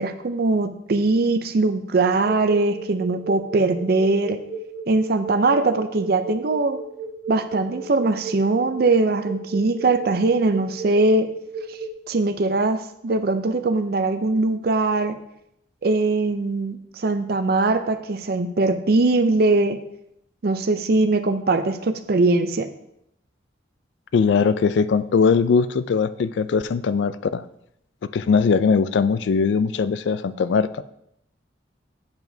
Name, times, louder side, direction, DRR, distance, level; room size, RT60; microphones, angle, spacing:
voice 1, 0.0-4.4 4.9-6.8 7.3-11.3 12.1-15.2 15.8-19.8 20.4-22.7, right 3 dB, 55° right, 10 dB, 0.5 m, -21 dB
sound 1, 2.3-11.9, right 4 dB, 70° right, 1.0 m, -33 dB
voice 2, 24.1-27.4 28.1-30.7, left 5 dB, 70° left, 14 dB, 0.3 m, -20 dB
8.0 x 6.9 x 2.7 m, 0.77 s
head